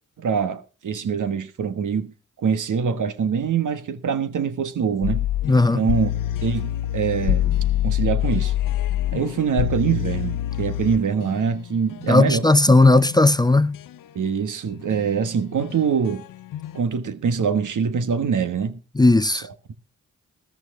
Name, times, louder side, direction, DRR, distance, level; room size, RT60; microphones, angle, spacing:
voice 1, 0.2-2.1 2.4-5.3 5.7-6.1 6.4-8.5 9.1-12.5 14.1-16.2 16.7-18.8 19.3-19.4, right 6 dB, 70° right, 1.4 m, -24 dB
sound 1, 5.0-12.3 12.8-14.0 14.7-16.8, left 12 dB, 85° left, 0.6 m, -26 dB
voice 2, 5.5-5.8 12.1-13.8 19.0-19.5, left 2 dB, 15° left, 0.6 m, -16 dB
13.5 x 13.5 x 3.6 m
cardioid pair, 50°, 32 cm